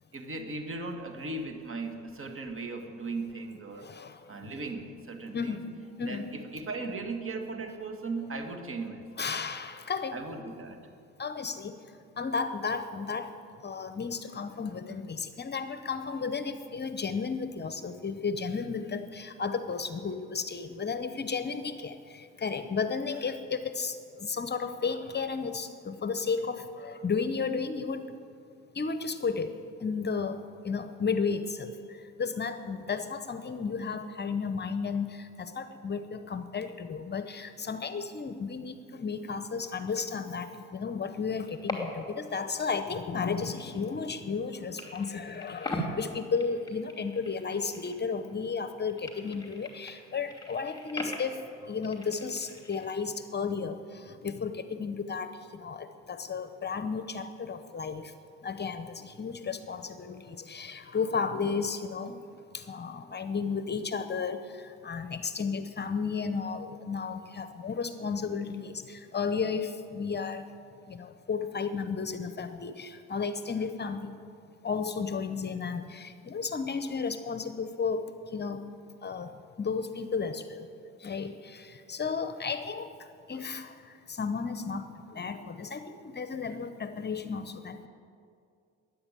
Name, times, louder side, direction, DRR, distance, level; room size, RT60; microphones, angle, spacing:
voice 1, 0.1-3.9 4.3-5.6 6.0-6.2 6.5-9.1 10.1-10.8, right 3 dB, 45° right, 5 dB, 2.1 m, -37 dB
voice 2, 3.7-4.2 5.3-6.3 9.2-10.2 11.2-11.7 12.2-13.3 13.6-28.0 28.7-29.5 29.8-31.7 32.2-51.4 51.7-58.1 58.4-62.2 62.5-70.5 70.9-74.2 74.6-78.1 78.3-78.6 79.0-79.3 79.6-80.7 81.0-82.9 83.3-83.8 84.1-87.9, left 5 dB, 35° left, 10 dB, 0.9 m, -33 dB
sound 1, 41.4-42.2 42.5-44.5 44.8-48.3 48.6-52.9, left 1 dB, 15° left, 2.9 m, -41 dB
13.0 x 10.0 x 9.0 m, 2.4 s
cardioid pair, 90°, 30 cm